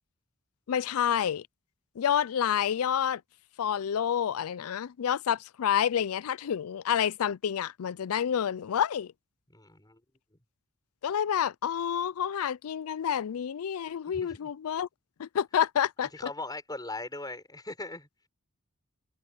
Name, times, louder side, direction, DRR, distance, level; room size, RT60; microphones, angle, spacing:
voice 1, 0.7-1.4 2.0-3.2 3.6-9.1 11.0-14.9 15.2-16.1, left 9 dB, 75° left, 0.4 m, -28 dB
voice 2, 9.5-10.0 14.1-14.5 16.1-18.1, left 2 dB, 15° left, 6.0 m, -40 dB
head